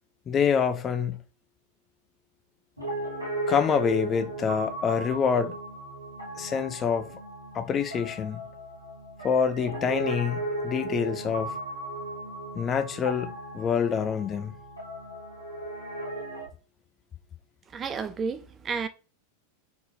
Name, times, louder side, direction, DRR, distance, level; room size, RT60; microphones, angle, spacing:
voice 1, 0.3-1.2 3.5-5.5 6.4-7.2 7.5-8.4 9.2-11.5 12.5-14.5, left 6 dB, 25° left, 0.6 m, -26 dB
Piano, 2.8-16.5, right 1 dB, 90° left, 1.9 m, -36 dB
voice 2, 17.7-18.9, right 5 dB, 25° right, 0.4 m, -31 dB
3.9 x 3.8 x 2.6 m
figure-of-eight pair, 90°, 0 cm